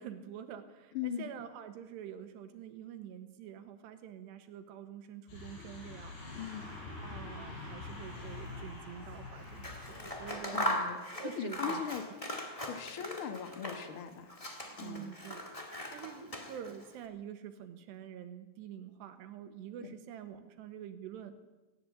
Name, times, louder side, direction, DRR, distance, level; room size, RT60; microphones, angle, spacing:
voice 1, 0.0-6.1 7.0-12.0 14.8-15.4 15.9-21.4, right 9 dB, 80° right, 9 dB, 3.5 m, -47 dB
voice 2, 0.9-1.3 6.3-6.7 10.5-11.0 11.4-12.0 12.6-14.4 14.8-15.1, left 8 dB, 55° left, 8 dB, 1.5 m, -39 dB
sound 1, 5.3-10.3, left 3 dB, 85° left, 7.8 m, -45 dB
Scissors, 9.5-14.0 14.3-16.9, equal, 40° left, 0.4 m, -39 dB
18.0 x 17.5 x 8.4 m, 1.1 s
omnidirectional pair, 4.8 m